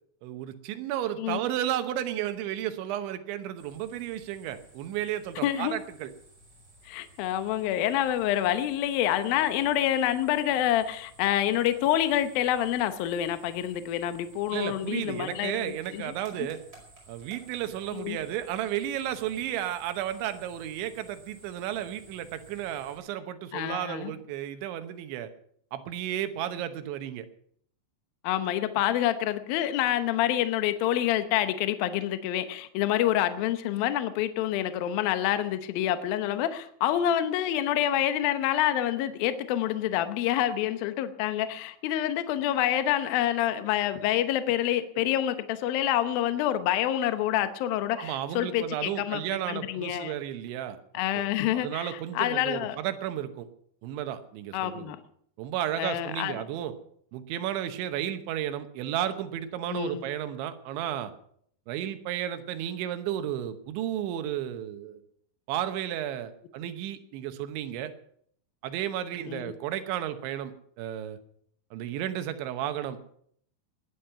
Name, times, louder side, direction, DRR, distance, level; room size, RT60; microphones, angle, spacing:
voice 1, 0.2-6.1 14.5-16.6 17.1-25.3 25.7-27.3 48.0-50.8 51.1-51.3 51.5-53.5 53.8-54.9 55.4-56.8 57.1-61.1 61.7-65.0 65.5-67.9 68.6-70.5 70.8-71.2 71.7-73.1, right 11 dB, 85° right, 10 dB, 3.4 m, -33 dB
sound 1, 3.6-23.0, right 1 dB, 20° right, 5.4 m, -55 dB
voice 2, 5.4-5.7 6.8-16.5 17.9-18.2 23.5-24.1 28.2-49.2 49.5-50.1 50.9-52.8 54.5-55.0 55.8-56.4 59.7-60.0 69.3-69.4, left 12 dB, 75° left, 10 dB, 2.3 m, -27 dB
19.0 x 10.5 x 5.8 m, 0.64 s
omnidirectional pair, 5.3 m